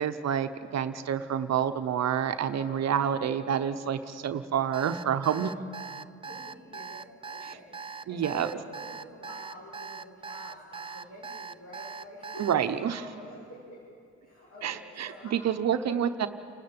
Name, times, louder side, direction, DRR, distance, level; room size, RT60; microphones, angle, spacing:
voice 1, 0.0-5.5 7.5-7.6 8.1-8.5 12.4-13.0 14.6-16.3, right 8 dB, 60° right, 9 dB, 1.0 m, -28 dB
voice 2, 2.4-2.8 5.2-5.4 6.2-13.8 14.2-16.0, equal, 55° left, -6 dB, 7.0 m, -47 dB
Alarm, 4.7-12.5, right 5 dB, 20° right, 0.5 m, -41 dB
28.5 x 12.5 x 8.8 m, 2.5 s
cardioid pair, 90°, 30 cm